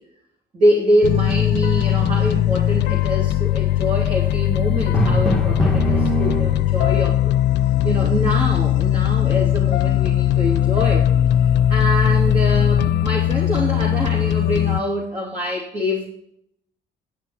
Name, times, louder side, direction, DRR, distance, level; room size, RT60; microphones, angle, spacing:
voice 1, 0.5-7.3 7.8-11.1 11.7-16.1, equal, 40° right, -3 dB, 3.1 m, -24 dB
sound 1, 1.0-14.8, left 12 dB, 80° left, 0.5 m, -19 dB
Drum, 4.9-7.0, right 1 dB, 5° left, 1.3 m, -22 dB
10.5 x 8.8 x 4.5 m, 0.73 s
cardioid pair, 110°, 18 cm